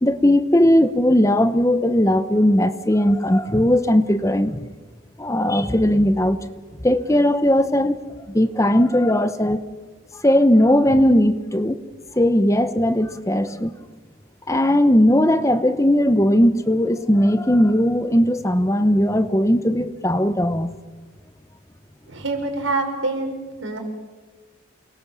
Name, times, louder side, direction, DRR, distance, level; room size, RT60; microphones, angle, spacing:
voice 1, 0.0-4.6 5.2-6.4 6.8-8.0 8.3-9.7 10.2-11.8 12.1-13.7 14.5-20.8, left 1 dB, 15° left, 11 dB, 0.9 m, -18 dB
voice 2, 22.1-23.8, right 3 dB, 85° right, 4 dB, 5.4 m, -26 dB
28.5 x 21.5 x 7.3 m, 1.3 s
head